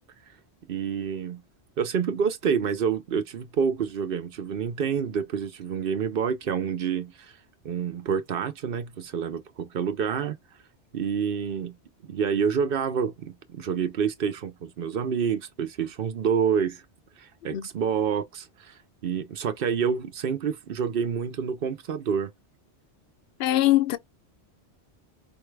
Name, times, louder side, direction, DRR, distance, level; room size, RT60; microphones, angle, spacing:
voice 1, 0.7-1.4 1.8-7.3 7.6-10.4 10.9-11.7 12.0-16.8 17.2-22.3, right 7 dB, 60° right, 0.9 m, -28 dB
voice 2, 23.4-24.0, left 15 dB, 70° left, 0.8 m, -21 dB
5.2 x 2.3 x 3.2 m
omnidirectional pair, 1.1 m